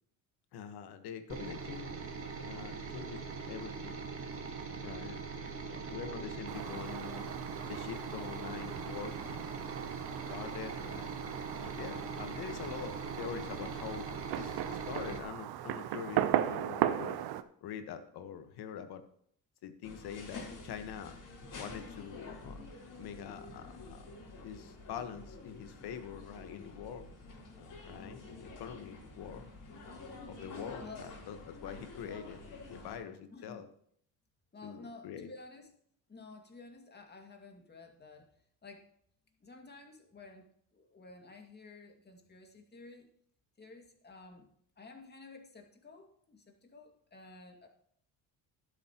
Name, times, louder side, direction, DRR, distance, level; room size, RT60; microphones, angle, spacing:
voice 1, 0.5-1.9 2.4-4.0 4.8-5.2 5.6-7.3 7.7-9.6 10.3-11.2 11.6-14.1 14.4-17.2 17.6-19.0 19.6-21.2 21.6-22.6 23.0-24.0 24.4-27.1 27.5-29.5 30.3-33.7 34.6-35.3, left 8 dB, 70° left, 8 dB, 1.4 m, -44 dB
sound 1, 1.3-15.2, right 4 dB, 35° right, 1.7 m, -42 dB
Fireworks, 6.5-17.4, right 12 dB, 65° right, 0.8 m, -37 dB
sound 2, 19.8-33.0, left 2 dB, 50° left, 3.5 m, -49 dB
voice 2, 30.8-31.1 33.3-33.6 34.5-35.7 36.1-38.3 38.6-38.9 39.4-43.1 43.6-44.5 44.8-47.7, left 3 dB, 25° left, 3 dB, 2.2 m, -52 dB
11.5 x 10.5 x 3.0 m, 0.66 s
cardioid pair, 100°, 40 cm